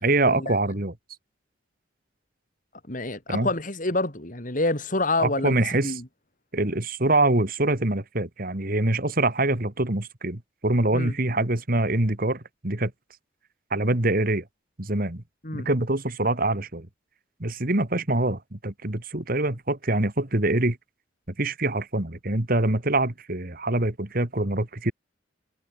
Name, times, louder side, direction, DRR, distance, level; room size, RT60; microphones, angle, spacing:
voice 1, 0.0-0.9 3.3-3.5 5.2-6.0 6.5-12.9 13.7-14.4 14.8-15.2 15.5-16.9 17.4-20.8 21.4-24.9, right 2 dB, 50° right, 2.2 m, -24 dB
voice 2, 2.9-6.0 10.9-11.1 15.4-15.7, left 2 dB, 45° left, 3.7 m, -27 dB
head